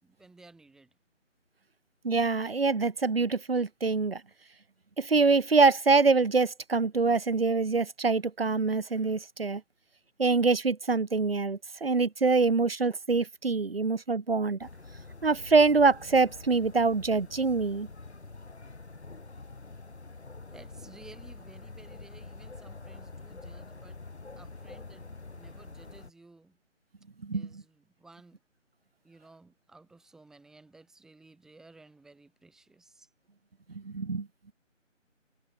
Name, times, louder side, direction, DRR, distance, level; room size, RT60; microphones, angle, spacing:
voice 1, 0.0-0.9 20.5-24.0 24.4-26.6 27.3-28.4 29.0-33.1, right 3 dB, ahead, 4.0 m, -55 dB
voice 2, 2.0-4.2 5.0-9.6 10.2-14.7 15.2-17.9 27.2-27.6 33.7-34.3, right 4 dB, 50° right, 3.2 m, -25 dB
sound 1, 14.6-26.1, left 3 dB, 60° left, 5.5 m, -46 dB
figure-of-eight pair, 165°, 38 cm